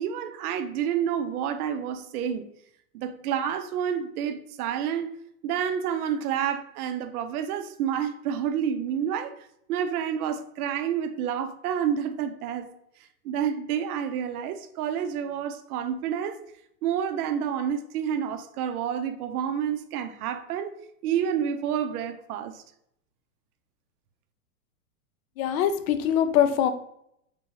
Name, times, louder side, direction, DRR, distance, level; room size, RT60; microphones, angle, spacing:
voice 1, 0.0-2.5 2.9-5.1 5.4-9.4 9.7-12.7 13.2-16.4 16.8-20.7 21.0-22.6, right 8 dB, 75° right, 0.5 m, -29 dB
voice 2, 25.4-26.7, left 9 dB, 70° left, 0.5 m, -23 dB
3.5 x 2.7 x 2.9 m
hypercardioid pair, 125°, 45 cm